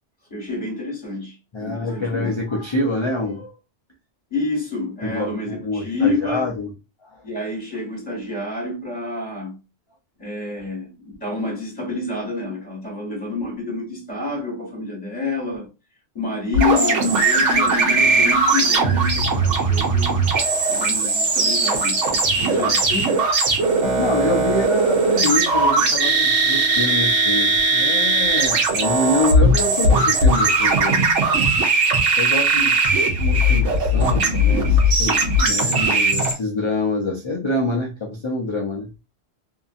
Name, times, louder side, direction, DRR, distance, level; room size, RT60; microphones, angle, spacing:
voice 1, 0.3-2.3 4.3-6.5 7.2-9.6 10.2-15.7 16.1-20.2 20.7-22.0 22.3-23.1, left 3 dB, 25° left, 1.4 m, -28 dB
voice 2, 1.5-3.6 5.0-6.7 7.0-7.2 22.5-22.8 23.5-31.1 32.2-38.9, left 2 dB, 50° left, 0.3 m, -26 dB
sound 1, 16.5-36.3, right 2 dB, 75° right, 1.1 m, -18 dB
2.7 x 2.5 x 2.5 m
omnidirectional pair, 1.3 m